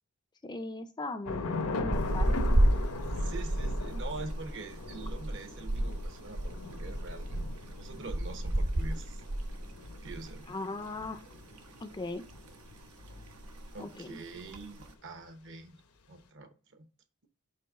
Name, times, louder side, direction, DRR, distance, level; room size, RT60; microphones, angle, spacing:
voice 1, 0.4-2.5 10.5-11.2 11.8-12.2 13.8-14.2, left 2 dB, 20° left, 0.4 m, -39 dB
Thunder / Rain, 1.3-13.8, left 3 dB, 80° left, 0.9 m, -40 dB
sound 1, 1.9-10.4 10.7-10.9 11.3-12.2 12.5-12.8 13.1-13.2 13.4-13.8 14.4-14.9, right 1 dB, 90° right, 1.0 m, -31 dB
voice 2, 3.0-7.5 7.8-9.2 10.0-10.6 13.7-15.8 16.1-16.9, right 3 dB, 55° right, 0.9 m, -45 dB
5.3 x 4.2 x 5.5 m
head